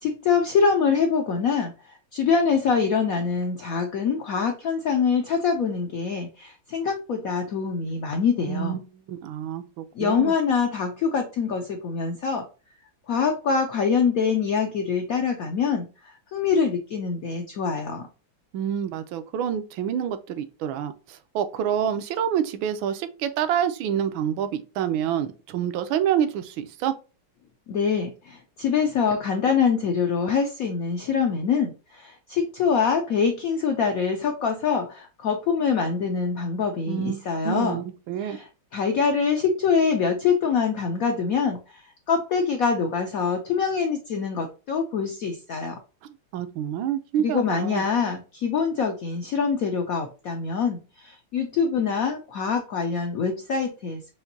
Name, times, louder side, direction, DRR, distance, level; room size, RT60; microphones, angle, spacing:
voice 1, 0.0-1.7 2.1-8.8 9.9-12.4 13.1-18.1 27.7-37.8 38.2-41.8 42.1-45.8 47.2-54.1, left 5 dB, 85° left, 0.7 m, -24 dB
voice 2, 8.5-10.3 18.5-26.9 36.9-38.4 46.3-47.8, right 9 dB, 80° right, 1.3 m, -27 dB
5.7 x 2.6 x 2.6 m
omnidirectional pair, 2.3 m